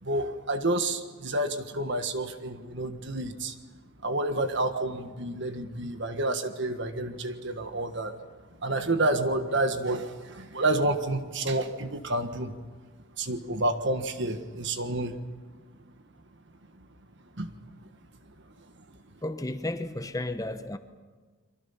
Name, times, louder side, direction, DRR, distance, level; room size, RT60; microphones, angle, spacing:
voice 1, 0.0-3.6 4.0-8.2 8.6-12.5 13.2-15.2 16.8-16.9 17.4-17.5 18.4-18.5 18.9-19.0, right 2 dB, 55° right, 1.5 m, -29 dB
voice 2, 19.2-20.8, left 1 dB, 15° left, 1.0 m, -33 dB
30.0 x 24.0 x 5.8 m
head